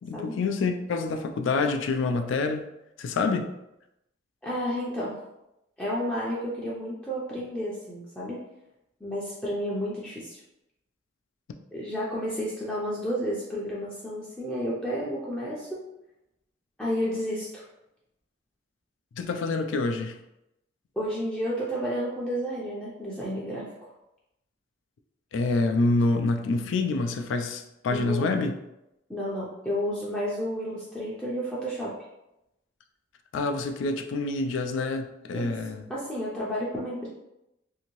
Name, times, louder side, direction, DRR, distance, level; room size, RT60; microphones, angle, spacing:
voice 1, 0.0-2.6 3.0-3.5 19.1-20.2 25.3-28.5 33.3-35.8, left 3 dB, 70° left, 6 dB, 0.3 m, -27 dB
voice 2, 4.4-5.2 5.8-8.4 9.0-10.4 11.7-15.8 16.8-17.6 21.0-23.9 27.9-28.5 29.1-32.0 35.3-35.6 35.9-37.1, equal, 5° left, -7 dB, 0.5 m, -31 dB
2.7 x 2.6 x 3.0 m, 0.88 s
head